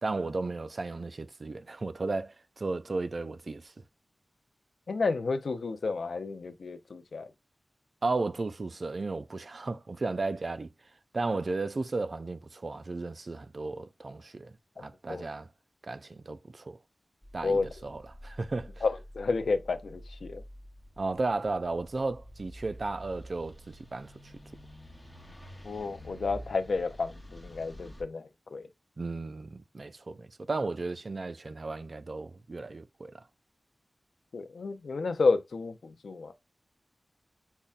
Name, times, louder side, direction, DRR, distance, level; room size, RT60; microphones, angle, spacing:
voice 1, 0.0-3.7 8.0-10.7 11.1-15.5 15.8-16.8 17.3-18.8 21.0-24.3 29.0-33.2, right 3 dB, 60° right, 0.3 m, -34 dB
voice 2, 4.9-7.3 14.8-15.2 17.4-17.7 18.8-20.4 25.6-28.7 34.3-36.3, left 4 dB, 90° left, 0.4 m, -31 dB
sound 1, 17.2-28.0, equal, 20° left, 0.9 m, -48 dB
5.4 x 2.1 x 2.4 m
wide cardioid pair, 60°, 0 cm